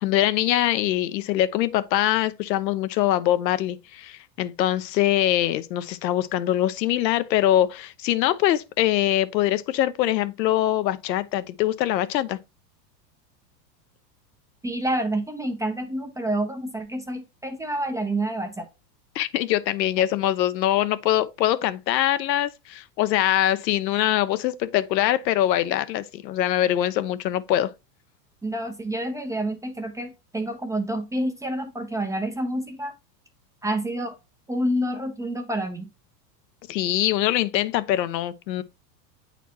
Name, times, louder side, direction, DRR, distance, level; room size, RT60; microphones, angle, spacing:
voice 1, 0.0-12.4 19.1-27.7 36.7-38.6, left 13 dB, 85° left, 0.7 m, -23 dB
voice 2, 14.6-18.7 28.4-32.9 33.6-34.2 34.5-35.9, right 1 dB, 5° right, 0.4 m, -28 dB
8.2 x 4.2 x 2.8 m
hypercardioid pair, 110°, 49 cm